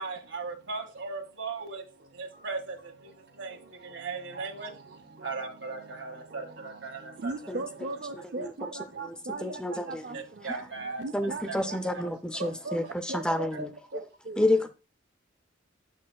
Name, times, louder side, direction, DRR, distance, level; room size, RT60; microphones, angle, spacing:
voice 1, 0.0-7.6 8.4-8.5 10.1-11.2 11.5-12.0 12.4-12.6 13.5-13.6, right 4 dB, 80° right, 1.4 m, -38 dB
voice 2, 7.2-9.6 9.9-10.1 11.0-11.4 11.7-11.8 12.4-12.8 13.1-13.7 13.9-14.0 14.3-14.4, right 3 dB, 55° right, 0.5 m, -37 dB
voice 3, 9.4-10.5 11.1-13.7 14.4-14.7, left 1 dB, 5° left, 0.4 m, -29 dB
8.2 x 6.4 x 2.2 m
head